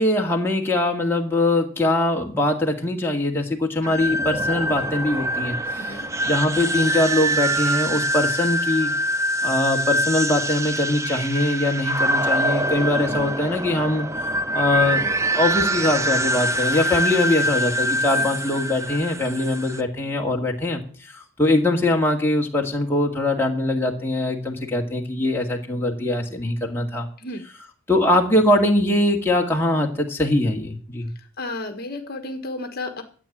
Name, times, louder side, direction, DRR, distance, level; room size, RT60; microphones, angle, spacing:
voice 1, 0.0-8.9 9.4-14.1 14.5-20.8 21.4-27.1 27.9-31.1, left 1 dB, 10° left, -1 dB, 2.1 m, -22 dB
sound 1, 3.8-19.8, right 1 dB, 15° right, 0.6 m, -24 dB
voice 2, 5.7-6.1 18.1-18.3 27.2-27.4 31.4-33.0, left 2 dB, 45° left, 5 dB, 1.5 m, -32 dB
13.0 x 8.8 x 7.4 m, 0.42 s
head